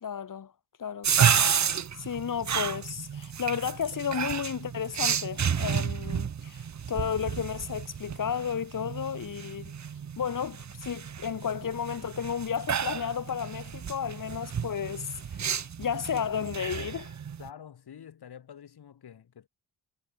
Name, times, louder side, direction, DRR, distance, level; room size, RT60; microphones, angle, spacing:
voice 1, 0.0-0.5 0.8-1.5 2.0-9.7 10.2-15.5 15.8-17.1, left 8 dB, 50° left, 2.2 m, -33 dB
sound 1, 1.0-17.5, right 7 dB, 45° right, 1.3 m, -31 dB
voice 2, 17.4-19.5, left 8 dB, 70° left, 4.8 m, -47 dB
wide cardioid pair, 160°, 40 cm